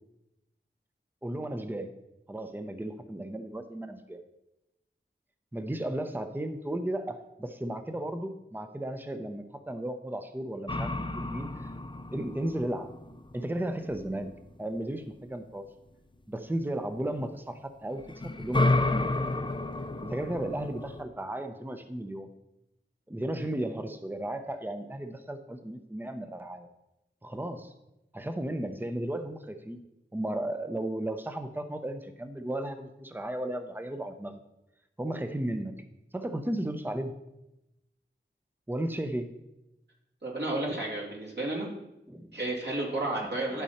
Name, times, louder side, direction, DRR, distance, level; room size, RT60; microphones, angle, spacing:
voice 1, 1.2-1.9 2.3-4.2 5.5-11.7 12.1-12.9 13.3-14.3 14.6-15.7 16.3-19.2 20.0-22.3 23.1-26.7 27.2-27.7 28.1-29.8 30.1-34.4 35.0-35.8 36.1-37.1 38.7-39.3 42.1-42.3, right 1 dB, 10° right, 8 dB, 0.7 m, -34 dB
sound 1, 10.7-14.4 17.9-21.0, left 2 dB, 25° left, 0.6 m, -31 dB
voice 2, 40.2-41.7 42.3-43.6, right 2 dB, 60° right, -3 dB, 2.8 m, -32 dB
12.0 x 5.3 x 4.3 m, 0.90 s
wide cardioid pair, 60°, 20 cm